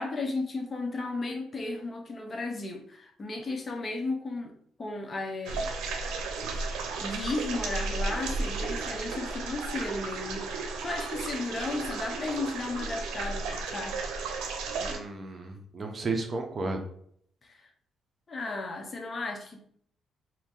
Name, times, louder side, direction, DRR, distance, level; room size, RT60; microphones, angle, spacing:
voice 1, 0.0-4.5 4.8-5.7 6.5-6.6 7.0-14.0 17.4-17.7 18.3-19.6, left 2 dB, 35° left, 0.6 m, -34 dB
sound 1, 5.5-15.0, right 3 dB, 90° right, 0.6 m, -34 dB
voice 2, 14.8-16.8, right 3 dB, 35° right, 0.7 m, -33 dB
2.9 x 2.6 x 3.6 m
cardioid pair, 90°, 0 cm